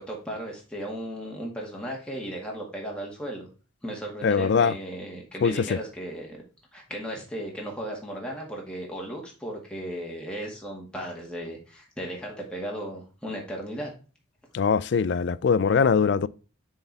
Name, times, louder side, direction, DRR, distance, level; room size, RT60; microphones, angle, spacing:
voice 1, 0.0-3.5 3.8-6.4 6.7-13.9, right 1 dB, 5° left, 1.8 m, -36 dB
voice 2, 4.2-4.7 5.4-5.8 14.5-16.3, left 6 dB, 55° left, 0.3 m, -22 dB
6.9 x 4.5 x 3.3 m
head